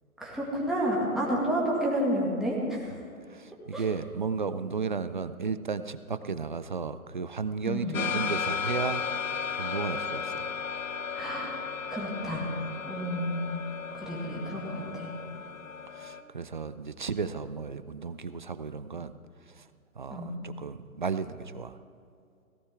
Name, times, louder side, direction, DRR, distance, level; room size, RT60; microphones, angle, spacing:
voice 1, 0.2-3.0 3.7-3.8 7.6-8.1 11.1-11.6 11.9-12.5 12.8-13.7 13.9-15.1 20.1-20.3, equal, ahead, -5 dB, 1.9 m, -30 dB
voice 2, 3.3-9.0 9.6-10.4 16.0-19.1 19.6-19.7 20.0-21.8, right 5 dB, 35° right, 13 dB, 0.4 m, -34 dB
sound 1, 7.9-16.2, left 6 dB, 65° left, 1.0 m, -34 dB
17.5 x 16.5 x 3.5 m, 2.4 s
figure-of-eight pair, 130°, 44 cm